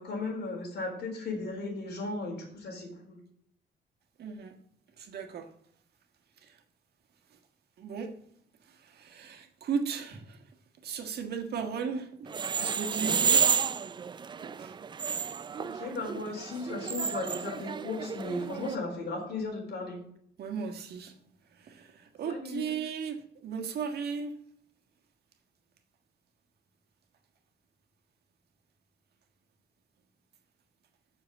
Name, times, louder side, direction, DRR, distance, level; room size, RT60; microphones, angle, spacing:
voice 1, 0.0-3.2 15.6-20.0 22.3-22.7, left 3 dB, 75° left, 4.4 m, -36 dB
voice 2, 4.2-4.6 5.0-5.5 6.4-6.6 7.8-8.1 8.6-10.5 10.8-13.5 14.4-14.8 20.4-21.2 21.5-24.4, right 6 dB, 70° right, 1.6 m, -36 dB
sound 1, 12.3-18.8, right 6 dB, 25° right, 0.3 m, -31 dB
7.8 x 6.9 x 6.8 m
wide cardioid pair, 175°, 18 cm